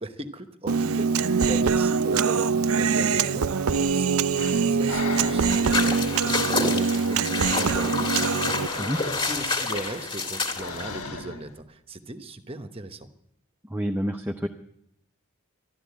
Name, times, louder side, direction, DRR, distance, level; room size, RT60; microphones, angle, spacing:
voice 1, 0.0-4.1 4.5-13.1, right 1 dB, 25° right, 9 dB, 1.0 m, -38 dB
Human voice, 0.7-8.7, right 5 dB, 75° right, 0.5 m, -23 dB
Breathing, 3.7-11.6, left 4 dB, 85° left, 1.7 m, -40 dB
sound 1, 5.4-11.0, left 3 dB, 25° left, 2.1 m, -28 dB
voice 2, 13.7-14.5, equal, 10° right, 5 dB, 0.6 m, -28 dB
12.5 x 12.5 x 8.3 m, 0.78 s
head